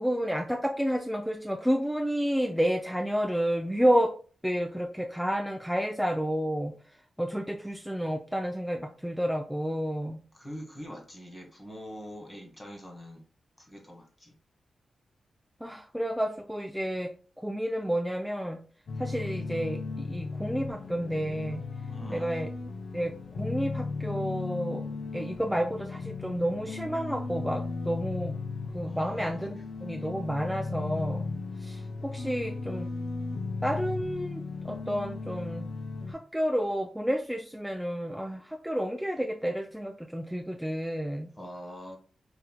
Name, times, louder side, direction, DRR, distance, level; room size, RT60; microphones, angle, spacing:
voice 1, 0.0-4.1 4.4-6.7 7.2-10.2 15.6-17.1 17.4-18.6 19.0-21.6 22.1-22.5 22.9-24.8 25.1-28.3 28.7-31.3 31.6-32.9 33.6-35.7 36.1-41.3, equal, ahead, 2 dB, 0.4 m, -30 dB
voice 2, 10.3-13.2 13.6-14.3 21.9-22.3 28.8-29.6 41.3-42.0, equal, 30° left, 2 dB, 1.3 m, -43 dB
sound 1, 18.9-36.1, left 3 dB, 70° left, 0.4 m, -36 dB
4.3 x 2.7 x 2.2 m, 0.41 s
cardioid pair, 50°, 0 cm